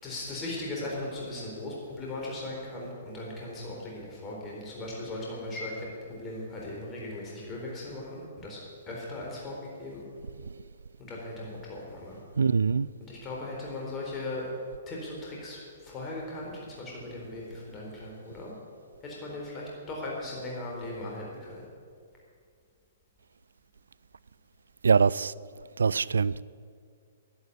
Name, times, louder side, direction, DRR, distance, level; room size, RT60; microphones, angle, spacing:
voice 1, 0.0-8.6 8.9-10.0 11.1-12.2 13.1-14.5 14.9-18.5 19.0-21.6, left 2 dB, 25° left, -3 dB, 3.9 m, -38 dB
voice 2, 12.4-12.9 24.8-25.3 25.8-26.4, right 5 dB, 85° right, 21 dB, 0.3 m, -23 dB
11.0 x 11.0 x 8.3 m, 2.2 s
hypercardioid pair, 130°, 0 cm